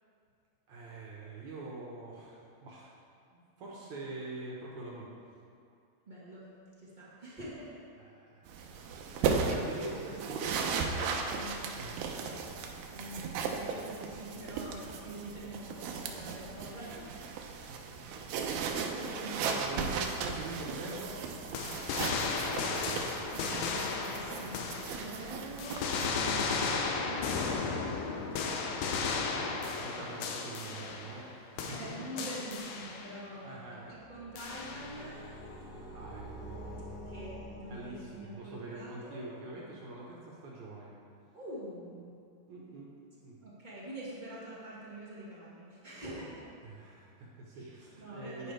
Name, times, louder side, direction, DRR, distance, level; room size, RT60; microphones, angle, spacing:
voice 1, 0.7-2.9 3.3-5.1 8.0-8.4 8.7-11.1 11.8-12.1 17.5-18.7 19.5-21.1 29.2-31.7 33.1-34.0 35.7-36.8 37.7-40.9 42.5-42.9 43.2-43.4 46.6-48.5, right 2 dB, 60° right, -4 dB, 2.3 m, -45 dB
voice 2, 6.1-6.5 6.8-7.8 9.4-9.6 9.9-12.5 12.9-17.3 18.6-19.6 21.8-28.5 31.6-33.6 33.9-35.2 37.1-39.2 41.3-42.2 43.4-46.4 47.5-47.7 48.0-48.5, right 1 dB, 35° right, -8 dB, 0.7 m, -46 dB
sound 1, 8.5-26.1, right 5 dB, 85° right, 2.6 m, -36 dB
Shoots from distance, 21.5-25.3 25.6-31.3 31.6-33.2 34.4-35.1, left 4 dB, 85° left, 2.7 m, -35 dB
sound 2, 33.8-38.5, equal, 65° left, 2.3 m, -46 dB
10.0 x 10.0 x 3.4 m, 2.5 s
omnidirectional pair, 4.2 m